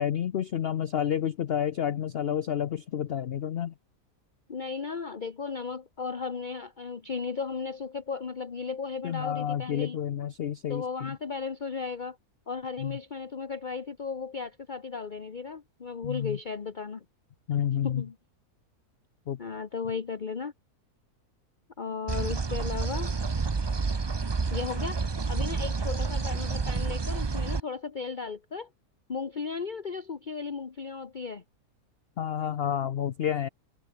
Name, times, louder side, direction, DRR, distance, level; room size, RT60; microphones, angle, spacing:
voice 1, 0.0-3.7 9.0-11.2 12.8-13.0 16.0-16.4 17.5-18.0 19.3-19.4 32.2-33.5, left 9 dB, 55° left, 0.7 m, -30 dB
voice 2, 4.5-10.0 10.7-12.2 12.5-17.0 17.8-18.1 19.4-20.5 21.8-23.1 24.5-28.7 29.1-31.4, left 5 dB, 35° left, 1.1 m, -35 dB
sound 1, 22.1-27.6, right 4 dB, 35° right, 0.4 m, -29 dB
omnidirectional pair, 1.6 m